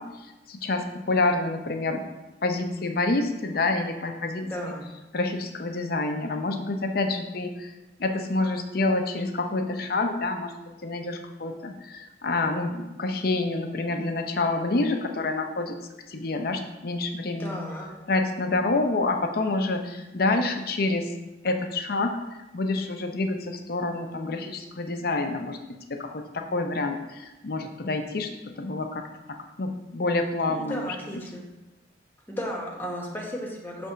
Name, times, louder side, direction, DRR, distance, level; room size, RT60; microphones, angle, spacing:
voice 1, 0.0-2.0 2.4-4.7 5.1-7.7 8.0-10.5 10.8-15.8 16.1-17.6 18.1-21.1 21.4-22.2 22.5-25.6 25.9-28.3 28.6-29.0 29.3-31.0, left 2 dB, 55° left, 5 dB, 0.6 m, -27 dB
voice 2, 4.4-4.8 17.4-17.9 30.4-31.4 32.3-33.9, equal, 10° left, -2 dB, 1.1 m, -34 dB
6.3 x 3.4 x 5.6 m, 1.0 s
head